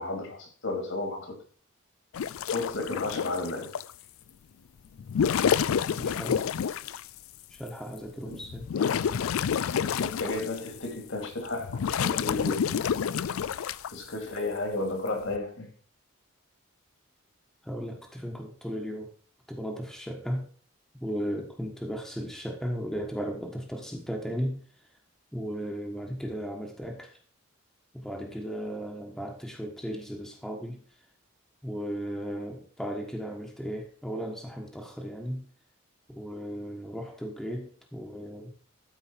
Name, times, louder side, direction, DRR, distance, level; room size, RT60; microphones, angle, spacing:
voice 1, 0.0-1.4 2.5-3.7 8.2-8.4 10.0-12.6 13.9-15.7, left 2 dB, 65° left, 2.6 m, -33 dB
sound 1, 2.1-3.9 5.0-7.1 7.7-7.8 8.3-10.8 11.2-13.9 15.1-15.4, left 7 dB, 85° left, 0.4 m, -28 dB
voice 2, 6.0-6.5 7.5-8.7 17.6-19.1 19.5-20.5 20.9-24.6 25.3-27.1 27.9-30.8 31.6-35.4 36.1-38.5, equal, ahead, 1.3 m, -36 dB
13.0 x 4.8 x 4.5 m
head